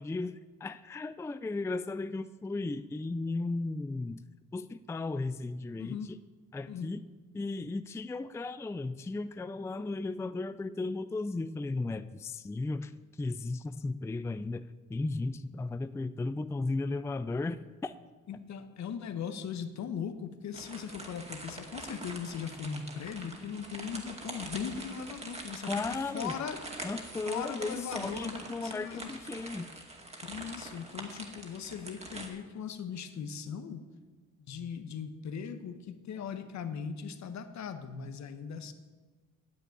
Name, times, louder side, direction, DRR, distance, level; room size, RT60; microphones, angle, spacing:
voice 1, 0.0-4.2 4.5-6.0 6.5-7.0 7.3-12.9 13.2-14.6 14.9-17.9 25.7-26.3 26.8-29.7, left 3 dB, 10° left, 13 dB, 0.4 m, -35 dB
voice 2, 5.8-6.1 6.7-6.9 18.3-26.7 27.3-29.1 30.2-33.8 34.4-38.7, left 7 dB, 65° left, 10 dB, 1.2 m, -39 dB
sound 1, 20.5-32.3, right 2 dB, 20° right, 2.2 m, -44 dB
9.9 x 7.5 x 9.2 m, 1.3 s
cardioid pair, 90°, 30 cm